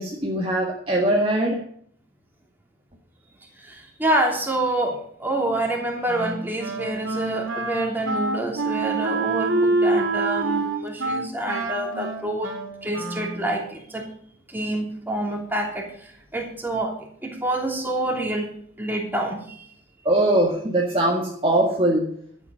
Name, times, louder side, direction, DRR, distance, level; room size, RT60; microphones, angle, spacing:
voice 1, 0.0-1.6 20.1-22.1, right 1 dB, 25° right, -1 dB, 1.7 m, -21 dB
voice 2, 3.6-12.5 12.8-14.0 14.5-16.9 17.2-18.5 18.8-19.7, right 1 dB, 10° right, 0 dB, 3.0 m, -27 dB
Wind instrument woodwind instrument, 6.0-13.5, right 3 dB, 90° right, 3.0 m, -26 dB
12.5 x 8.3 x 6.3 m, 0.63 s
head